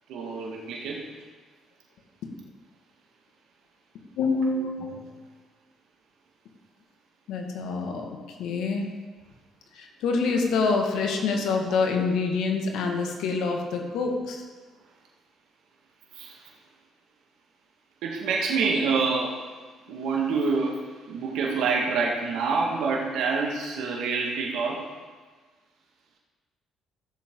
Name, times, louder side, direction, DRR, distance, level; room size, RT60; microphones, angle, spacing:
voice 1, 0.1-1.1 4.4-5.0 16.1-16.5 18.0-19.4 19.9-24.9, right 4 dB, 80° right, -2 dB, 1.9 m, -27 dB
voice 2, 4.2-4.8 7.3-8.9 9.7-14.4, left 4 dB, 80° left, 2 dB, 1.9 m, -26 dB
15.5 x 7.3 x 3.9 m, 1.4 s
supercardioid pair, 75°, 0 cm